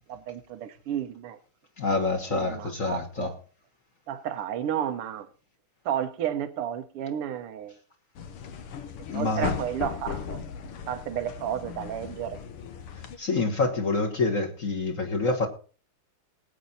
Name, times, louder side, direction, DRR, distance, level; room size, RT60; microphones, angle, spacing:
voice 1, 0.1-1.4 2.3-3.4 4.1-5.3 5.9-7.8 9.1-10.4 10.9-12.4, right 10 dB, 85° right, 1.9 m, -32 dB
voice 2, 1.8-3.3 9.1-9.5 13.2-15.5, left 3 dB, 40° left, 1.6 m, -27 dB
sound 1, 8.2-13.2, left 7 dB, 80° left, 2.1 m, -37 dB
19.0 x 8.6 x 4.1 m
omnidirectional pair, 2.4 m